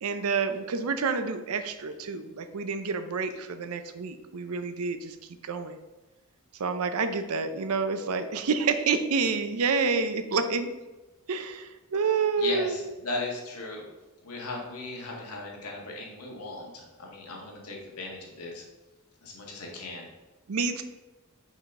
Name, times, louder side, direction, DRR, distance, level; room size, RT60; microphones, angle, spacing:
voice 1, 0.0-5.2 5.4-5.8 6.6-10.7 11.3-12.7 20.5-20.8, right 4 dB, 80° right, 9 dB, 0.5 m, -28 dB
voice 2, 12.4-13.8 14.2-18.6 19.2-20.1, left 2 dB, 85° left, -1 dB, 1.5 m, -37 dB
5.5 x 5.0 x 3.6 m, 1.1 s
head